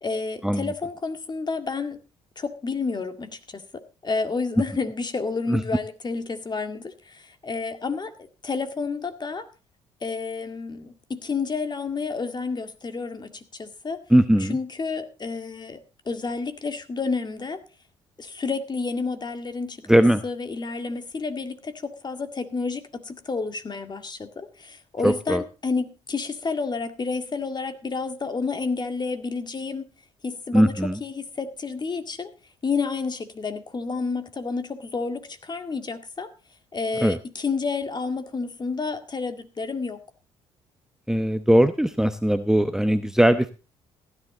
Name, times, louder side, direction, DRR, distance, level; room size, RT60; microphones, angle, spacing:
voice 1, 0.0-2.0 2.4-8.1 8.4-9.5 10.0-14.0 14.4-15.8 16.1-17.6 18.2-29.9 30.2-32.3 32.6-36.3 36.7-40.0, left 4 dB, 30° left, 8 dB, 2.0 m, -30 dB
voice 2, 14.1-14.6 19.9-20.2 25.0-25.4 30.5-31.0 37.0-37.2 41.1-43.5, right 1 dB, 5° right, 12 dB, 0.9 m, -19 dB
15.5 x 10.5 x 3.9 m, 0.31 s
hypercardioid pair, 55°, 14 cm